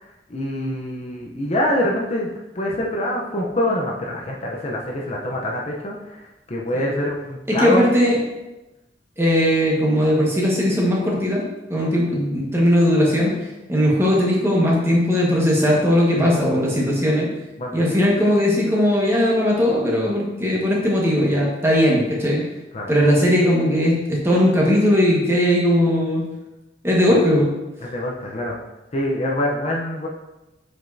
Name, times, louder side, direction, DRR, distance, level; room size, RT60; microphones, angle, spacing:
voice 1, 0.0-7.9 16.2-16.3 17.6-17.9 22.7-22.9 27.1-27.2 27.8-28.6 28.9-30.1, left 1 dB, 35° left, -2 dB, 0.7 m, -25 dB
voice 2, 7.5-8.2 9.2-11.4 11.7-13.3 13.7-17.3 17.7-22.4 22.9-26.2 26.8-27.5, equal, 15° right, -4 dB, 1.4 m, -18 dB
7.5 x 5.3 x 2.7 m, 1.0 s
head